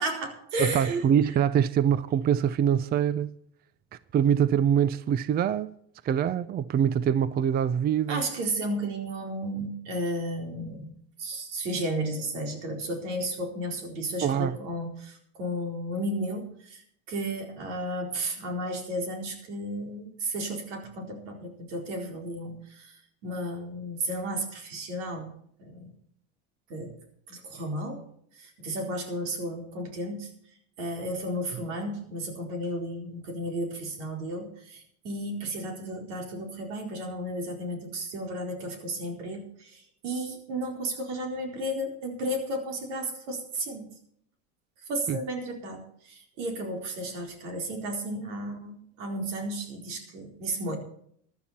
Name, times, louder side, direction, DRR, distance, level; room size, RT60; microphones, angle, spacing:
voice 1, 0.0-1.0 8.1-10.9 11.2-16.8 17.1-25.3 25.6-25.9 26.7-26.9 27.3-28.0 28.3-30.3 30.8-44.0 44.9-50.8, right 1 dB, 80° right, 4.3 m, -33 dB
voice 2, 0.6-3.4 4.1-5.7 6.0-8.2 14.2-14.6 45.1-45.2, right 9 dB, 25° right, 0.5 m, -24 dB
15.0 x 11.5 x 4.3 m
supercardioid pair, 115°, 36 cm